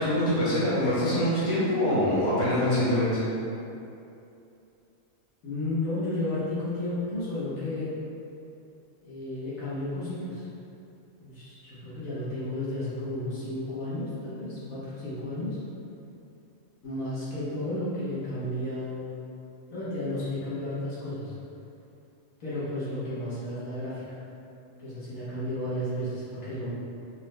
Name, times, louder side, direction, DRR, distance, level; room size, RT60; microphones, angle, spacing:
voice 1, 0.0-3.2, left 1 dB, 65° left, -10 dB, 1.4 m, -24 dB
voice 2, 5.4-7.9 9.0-10.5 11.2-15.6 16.8-19.1 19.7-21.3 22.4-24.2 24.8-26.7, left 1 dB, 85° left, -11 dB, 1.4 m, -33 dB
4.4 x 2.1 x 3.1 m, 2.7 s
omnidirectional pair, 1.4 m